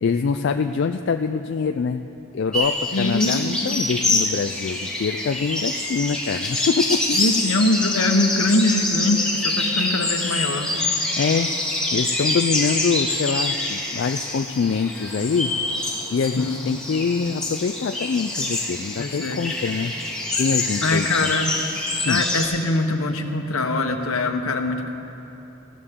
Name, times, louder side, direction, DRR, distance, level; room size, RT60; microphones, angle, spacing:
voice 1, 0.0-2.0 2.3-7.2 11.2-15.5 16.1-19.9 20.4-21.3 22.1-22.2, left 5 dB, 55° left, 7 dB, 0.3 m, -24 dB
sound 1, 2.5-22.4, left 2 dB, 5° left, 1.8 m, -26 dB
voice 2, 2.9-3.4 7.1-10.7 16.4-16.6 19.0-19.4 20.8-21.5 22.1-24.9, left 2 dB, 75° left, 5 dB, 1.1 m, -22 dB
19.0 x 14.5 x 3.7 m, 2.9 s
head